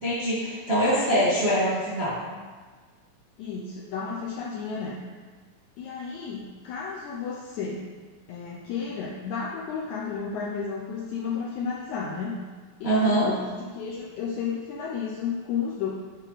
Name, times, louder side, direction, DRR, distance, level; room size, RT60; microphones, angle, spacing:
voice 1, 0.0-2.1 12.8-13.3, equal, 35° right, -10 dB, 1.0 m, -23 dB
voice 2, 3.4-5.0 5.8-7.9 8.3-12.5 12.8-15.9, left 6 dB, 80° left, -3 dB, 1.7 m, -32 dB
8.0 x 4.0 x 4.0 m, 1.4 s
omnidirectional pair, 4.0 m